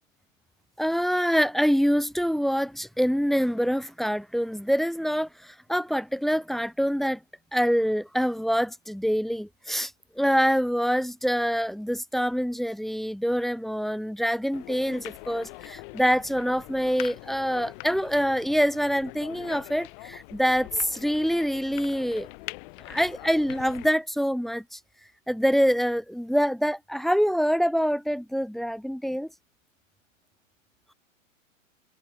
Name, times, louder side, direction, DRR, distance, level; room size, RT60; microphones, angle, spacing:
voice 1, 0.8-7.2 7.5-9.9 10.2-22.3 22.9-24.8 25.3-29.3, equal, ahead, 1.5 m, -25 dB
sound 1, 14.5-23.9, left 31 dB, 40° left, 7.8 m, -43 dB
figure-of-eight pair, 120°, 40 cm